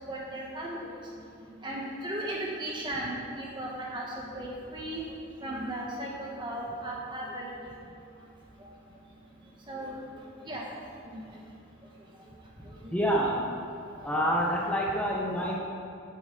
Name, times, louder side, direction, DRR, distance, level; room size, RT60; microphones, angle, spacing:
voice 1, 0.1-0.9 1.6-5.0 5.4-7.7 8.6-8.7 9.7-10.0 10.4-10.6 11.1-11.2 14.1-14.3, right 1 dB, 20° right, -3 dB, 1.2 m, -36 dB
voice 2, 12.9-13.5 14.0-15.6, equal, 5° left, -3 dB, 1.0 m, -27 dB
9.0 x 8.8 x 6.7 m, 2.5 s
head